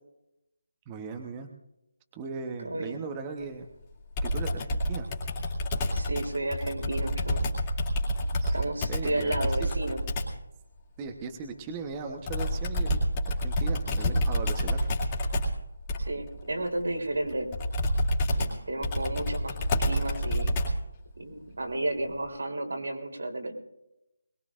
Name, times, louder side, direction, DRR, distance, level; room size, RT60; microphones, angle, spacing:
voice 1, 0.9-1.5 2.1-3.7 4.2-5.1 8.4-8.6 8.9-9.5 11.0-14.9, right 5 dB, 15° right, 4 dB, 1.0 m, -38 dB
voice 2, 2.6-3.0 5.9-7.4 8.5-10.0 16.1-17.5 18.3-20.5 21.2-23.5, right 2 dB, 85° right, 1 dB, 3.5 m, -32 dB
Computer keyboard, 4.2-10.4 12.3-20.9, equal, 20° left, 2.5 m, -28 dB
22.0 x 20.0 x 2.5 m, 0.90 s
figure-of-eight pair, 165°, 0 cm